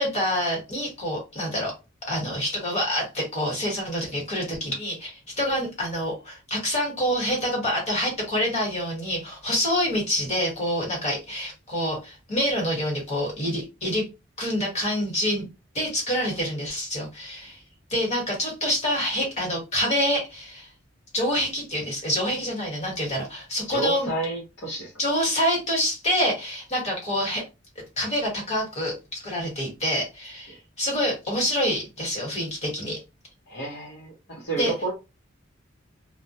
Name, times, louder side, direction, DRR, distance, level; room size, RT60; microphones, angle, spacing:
voice 1, 0.0-1.7 2.1-14.0 14.4-15.4 15.7-17.6 17.9-20.7 21.1-24.1 25.0-27.5 28.0-33.0 34.5-34.7, equal, 35° left, 1.3 m, -27 dB
voice 2, 23.7-24.9 30.5-30.6 33.5-34.9, right 3 dB, 60° left, 0.8 m, -30 dB
2.2 x 2.1 x 2.7 m
head